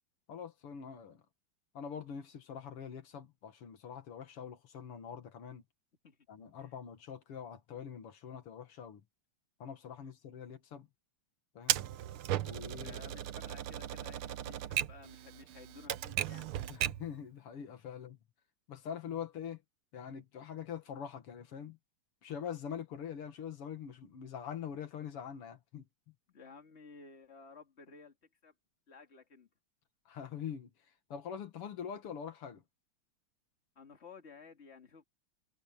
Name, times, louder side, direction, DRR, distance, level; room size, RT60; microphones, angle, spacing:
voice 1, 0.3-1.2 1.7-5.6 6.3-9.0 9.6-10.9 11.5-11.8 12.4-13.0 16.7-18.2 18.7-19.6 19.9-21.8 22.2-25.9 30.1-30.7 31.1-32.6, left 8 dB, 90° left, 2.7 m, -44 dB
Typewriter, 11.7-17.1, right 12 dB, 75° right, 1.7 m, -36 dB
voice 2, 12.8-16.5 26.3-28.1 28.4-28.5 28.9-29.5 33.8-35.0, left 5 dB, 30° left, 2.5 m, -54 dB
omnidirectional pair, 2.4 m